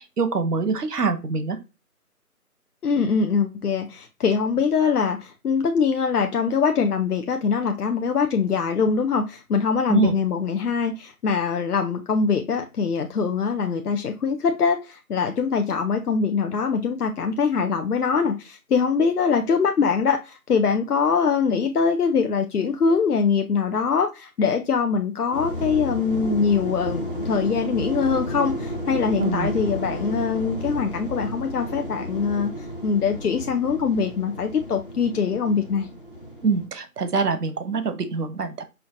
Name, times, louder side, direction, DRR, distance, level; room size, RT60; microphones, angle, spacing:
voice 1, 0.0-1.6 9.9-10.1 29.2-29.5 36.4-38.6, right 4 dB, 80° right, 10 dB, 0.8 m, -24 dB
voice 2, 2.8-35.9, left 5 dB, 80° left, 5 dB, 0.6 m, -23 dB
sound 1, 25.3-36.7, equal, 35° left, 0.8 m, -32 dB
5.6 x 2.2 x 2.5 m, 0.27 s
figure-of-eight pair, 180°, 46 cm